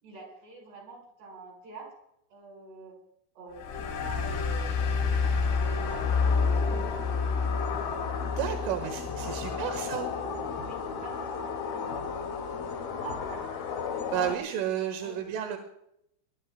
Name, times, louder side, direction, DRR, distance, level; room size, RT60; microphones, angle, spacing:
voice 1, 0.0-1.9 2.3-3.0 3.4-5.2 5.5-7.8 8.5-8.6 8.9-9.9 10.6-12.3 13.0-13.5 14.1-14.7 15.0-15.2, right 3 dB, 55° right, 2 dB, 7.2 m, -46 dB
sound 1, 3.5-10.6, left 5 dB, 70° left, 6.1 m, -29 dB
sound 2, 3.7-12.8, right 1 dB, 15° left, 7.3 m, -44 dB
sound 3, 4.2-14.4, left 7 dB, 55° left, 3.5 m, -36 dB
voice 2, 8.2-10.1 14.1-15.6, right 10 dB, 80° right, 6 dB, 3.9 m, -32 dB
22.0 x 21.5 x 2.2 m, 0.75 s
omnidirectional pair, 5.8 m